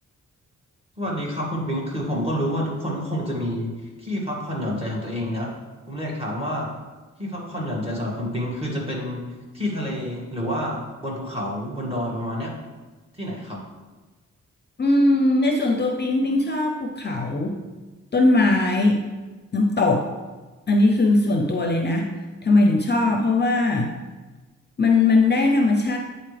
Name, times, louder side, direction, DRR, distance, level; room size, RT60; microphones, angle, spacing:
voice 1, 1.0-3.7 4.0-5.5 5.9-6.7 7.2-9.2 9.5-12.6 13.1-13.6, equal, 20° right, -3 dB, 2.1 m, -28 dB
voice 2, 14.8-17.6 18.1-19.0 19.5-20.1 20.7-22.1 22.4-23.9 24.8-26.0, left 2 dB, 35° left, 3 dB, 0.6 m, -19 dB
8.6 x 4.1 x 3.3 m, 1.3 s
cardioid pair, 80°, 31 cm